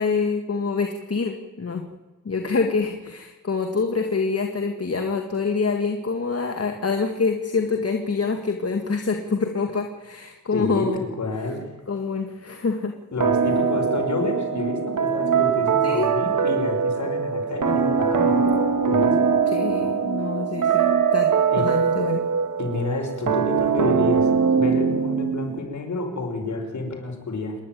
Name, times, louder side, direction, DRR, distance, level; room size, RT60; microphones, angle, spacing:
voice 1, 0.0-1.8 2.3-11.0 11.9-12.9 15.8-16.1 19.5-22.3, left 4 dB, 50° left, 4 dB, 1.9 m, -26 dB
voice 2, 10.5-11.6 13.1-18.5 18.8-19.2 21.5-21.7 22.6-27.6, left 2 dB, 65° left, 2 dB, 5.6 m, -29 dB
sound 1, 13.2-25.6, right 6 dB, 80° right, 2.4 m, -22 dB
27.5 x 11.0 x 9.3 m, 1.2 s
cardioid pair, 70°, 31 cm